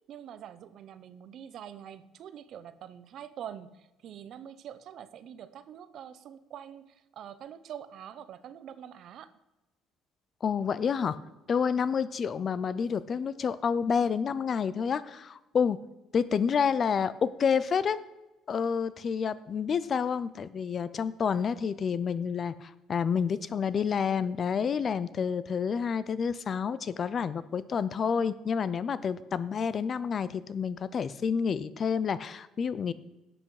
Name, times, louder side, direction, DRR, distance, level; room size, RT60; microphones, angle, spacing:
voice 1, 0.1-9.3, right 9 dB, 50° right, 14 dB, 0.6 m, -45 dB
voice 2, 10.4-11.2 11.5-15.8 16.1-18.0 18.5-32.9, left 6 dB, 30° left, 16 dB, 0.4 m, -29 dB
11.5 x 7.8 x 4.7 m, 1.0 s
cardioid pair, 165°, 0 cm